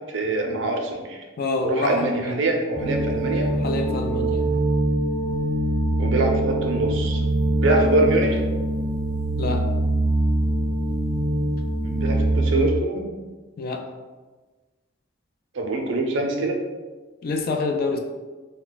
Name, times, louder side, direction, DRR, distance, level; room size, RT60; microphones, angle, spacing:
voice 1, 0.1-1.2 1.6-3.5 6.0-7.2 7.6-8.4 11.8-13.1 15.5-16.6, right 2 dB, 70° right, 2 dB, 0.5 m, -24 dB
voice 2, 1.4-2.4 3.5-4.5 7.7-7.8 9.4-9.7 13.6-13.8 17.2-18.0, left 3 dB, 50° left, 3 dB, 0.3 m, -27 dB
sound 1, 2.7-12.6, right 1 dB, 10° right, 0.5 m, -23 dB
2.3 x 2.2 x 3.8 m, 1.3 s
head